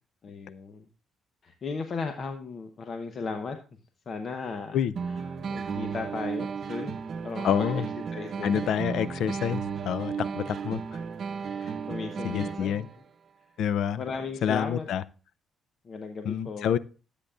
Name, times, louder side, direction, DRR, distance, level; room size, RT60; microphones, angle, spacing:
voice 1, 0.2-0.9 1.4-3.6 4.1-4.8 5.5-7.0 7.2-7.8 8.1-8.6 11.6-12.9 14.0-14.9 15.8-16.7, left 4 dB, 50° left, 6 dB, 0.9 m, -36 dB
sound 1, 5.0-12.9, right 6 dB, 55° right, 0.8 m, -34 dB
voice 2, 7.4-7.8 8.4-11.0 11.6-11.7 12.2-12.9 13.6-14.0 14.4-15.0 16.2-16.8, left 9 dB, 75° left, 17 dB, 0.4 m, -28 dB
12.5 x 8.2 x 2.4 m, 0.35 s
cardioid pair, 90°, 0 cm